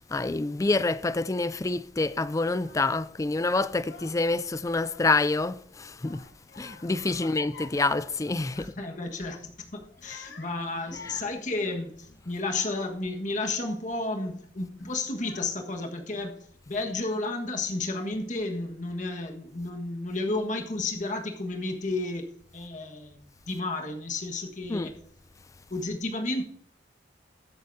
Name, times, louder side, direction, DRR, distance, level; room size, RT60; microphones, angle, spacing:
voice 1, 0.1-6.2 6.6-8.7 24.7-24.9, left 3 dB, 20° left, 0.4 m, -27 dB
Child speech kid speaking / Crying sobbing, 2.5-3.1 3.7-4.4 4.7-5.5 6.0-8.8 9.1-9.4 9.9-13.0 13.6-14.0 14.8-14.9 15.1-15.9, left 4 dB, 75° left, 1.2 m, -49 dB
voice 2, 8.5-25.0 25.7-26.4, left 2 dB, 45° left, 1.5 m, -32 dB
20.5 x 8.1 x 2.7 m
head